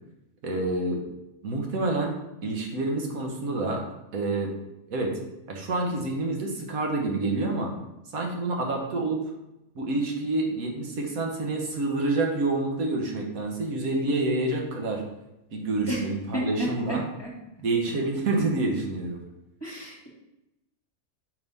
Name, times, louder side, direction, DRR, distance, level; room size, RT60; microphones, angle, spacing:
voice 1, 0.4-1.0 1.4-2.2 2.4-3.8 4.1-4.5 4.9-5.2 5.5-7.7 8.1-9.2 9.7-15.0 15.5-17.0 17.6-19.2, right 2 dB, 90° right, 1 dB, 1.5 m, -28 dB
voice 2, 16.3-17.3 19.6-20.1, equal, 20° left, -4 dB, 1.7 m, -32 dB
5.6 x 3.5 x 5.4 m, 0.92 s
omnidirectional pair, 1.4 m